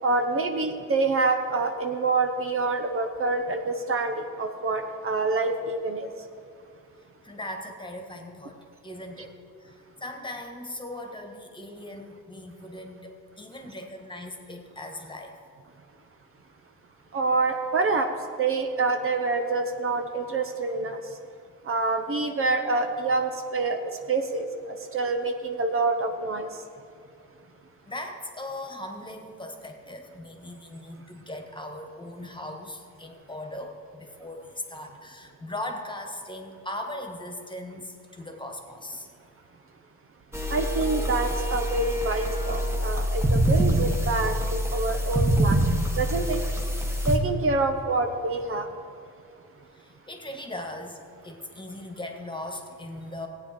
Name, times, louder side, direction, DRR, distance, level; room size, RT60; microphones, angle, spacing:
voice 1, 0.0-6.3 17.1-18.1 18.4-21.2 21.6-26.6 40.5-46.4 46.8-48.7, right 3 dB, 45° right, 5 dB, 0.8 m, -27 dB
voice 2, 7.2-15.4 27.8-39.1 49.7-53.3, left 1 dB, 15° left, 3 dB, 1.6 m, -39 dB
sound 1, 40.3-47.2, right 1 dB, 10° right, 1.4 m, -25 dB
16.5 x 8.7 x 4.4 m, 2.3 s
cardioid pair, 90°, 30 cm